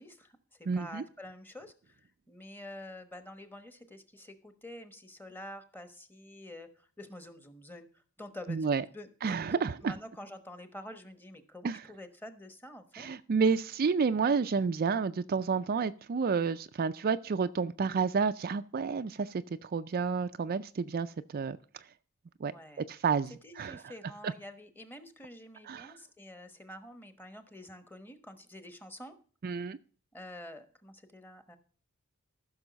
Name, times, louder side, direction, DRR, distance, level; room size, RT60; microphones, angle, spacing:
voice 1, 0.0-13.1 22.4-22.9 23.4-29.1 30.1-31.6, left 1 dB, 10° left, 1.1 m, -48 dB
voice 2, 0.7-1.0 8.5-8.8 9.2-9.9 11.6-11.8 12.9-21.9 22.4-22.5 22.8-23.9 24.2-24.3 25.6-25.9 29.4-29.8, right 5 dB, 40° right, 0.4 m, -30 dB
14.5 x 6.4 x 5.1 m
head